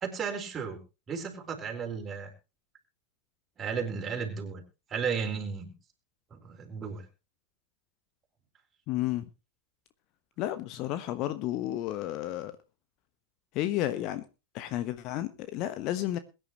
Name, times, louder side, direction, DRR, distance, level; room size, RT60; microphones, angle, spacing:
voice 1, 0.0-0.8 1.1-2.3 3.6-4.6 4.9-5.7 6.3-7.0, right 6 dB, 20° right, 4.4 m, -34 dB
voice 2, 8.9-9.3 10.4-12.5 13.5-14.2 14.5-16.2, left 14 dB, 40° left, 1.1 m, -32 dB
22.0 x 10.0 x 3.0 m
figure-of-eight pair, 90°, 0 cm